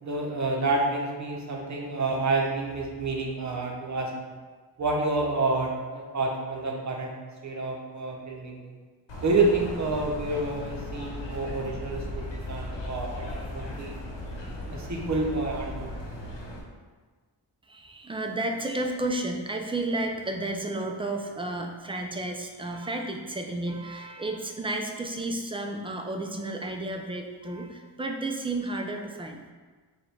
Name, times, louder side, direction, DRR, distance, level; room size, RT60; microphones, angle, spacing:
voice 1, 0.0-4.3 4.8-7.1 7.4-8.8 9.2-13.9 14.7-15.9, right 2 dB, 40° right, -1 dB, 0.8 m, -29 dB
sound 1, 9.1-16.6, left 1 dB, 85° left, 0.9 m, -37 dB
voice 2, 17.7-29.4, right 2 dB, 15° right, 2 dB, 0.4 m, -32 dB
4.9 x 2.4 x 3.3 m, 1.4 s
wide cardioid pair, 85°, 43 cm